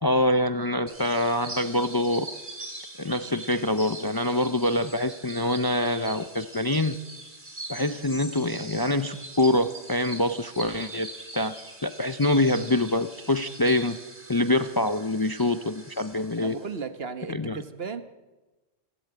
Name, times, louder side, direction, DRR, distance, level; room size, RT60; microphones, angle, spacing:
voice 1, 0.0-2.3 3.0-7.0 7.7-11.1 11.3-11.5 11.8-14.0 14.3-16.6 17.3-17.6, left 1 dB, 25° left, 10 dB, 0.6 m, -25 dB
sound 1, 0.9-16.8, right 1 dB, 40° right, 3.3 m, -42 dB
voice 2, 16.4-18.0, right 5 dB, 65° right, 9 dB, 1.5 m, -35 dB
28.5 x 12.0 x 9.0 m, 1.2 s
omnidirectional pair, 1.1 m